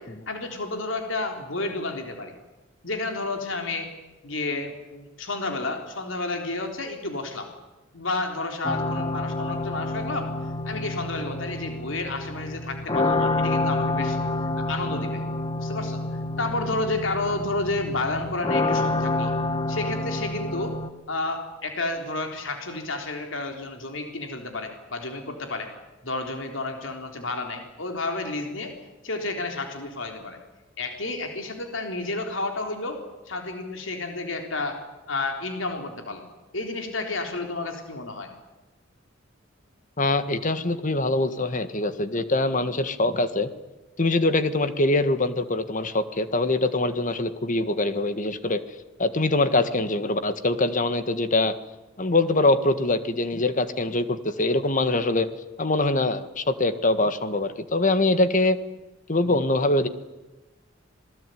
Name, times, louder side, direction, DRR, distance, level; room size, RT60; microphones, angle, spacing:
voice 1, 0.0-2.3 2.8-3.9 4.2-7.5 7.9-10.3 10.7-14.2 14.6-15.2 15.6-16.0 16.4-19.3 19.7-20.8 21.1-25.7 26.0-28.7 29.0-30.4 30.8-34.8 35.1-36.2 36.5-38.3, left 2 dB, 70° left, 4 dB, 3.8 m, -31 dB
sound 1, 8.6-20.9, left 2 dB, 25° left, 1.4 m, -28 dB
voice 2, 40.0-43.5 44.0-48.6 49.0-51.6 52.0-55.3 55.6-58.6 59.1-59.9, left 2 dB, 40° left, 11 dB, 1.7 m, -23 dB
27.0 x 19.5 x 9.4 m, 1.1 s
head